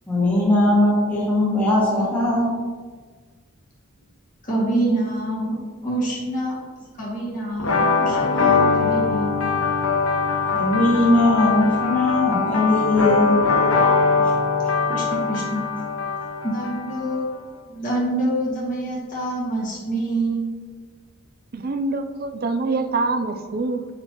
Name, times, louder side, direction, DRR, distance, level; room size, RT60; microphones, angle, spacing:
voice 1, 0.1-2.5 10.5-13.4, left 1 dB, 5° left, -7 dB, 1.6 m, -19 dB
voice 2, 4.4-5.6 5.8-6.6 6.9-9.3 14.9-15.6 16.4-17.3 17.7-20.5, right 1 dB, 35° left, -5 dB, 1.9 m, -26 dB
sound 1, 7.6-17.2, left 4 dB, 75° left, 0.9 m, -21 dB
voice 3, 21.5-23.9, right 3 dB, 45° right, 7 dB, 0.4 m, -25 dB
8.9 x 4.3 x 3.0 m, 1.5 s
head